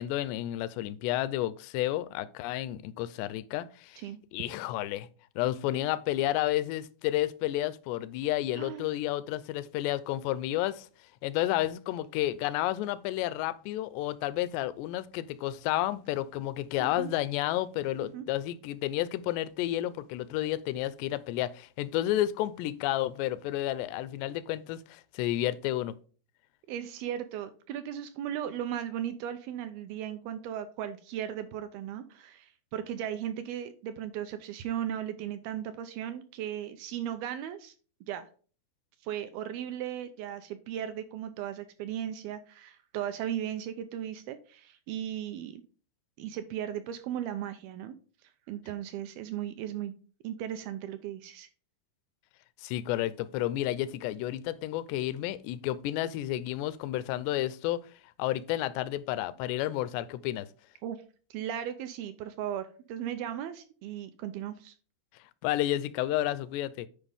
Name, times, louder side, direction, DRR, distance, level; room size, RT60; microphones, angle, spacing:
voice 1, 0.0-4.0 4.3-5.1 5.4-10.9 11.2-26.0 52.6-57.9 58.2-60.5 65.4-66.9, left 14 dB, 85° left, 2.7 m, -31 dB
voice 2, 8.6-8.9 16.8-17.1 17.9-18.3 26.7-37.7 38.0-38.3 39.0-45.6 46.2-47.9 48.5-49.9 50.2-51.5 60.8-61.0 61.3-64.7, right 10 dB, 80° right, 2.2 m, -36 dB
9.9 x 5.2 x 3.5 m
omnidirectional pair, 4.8 m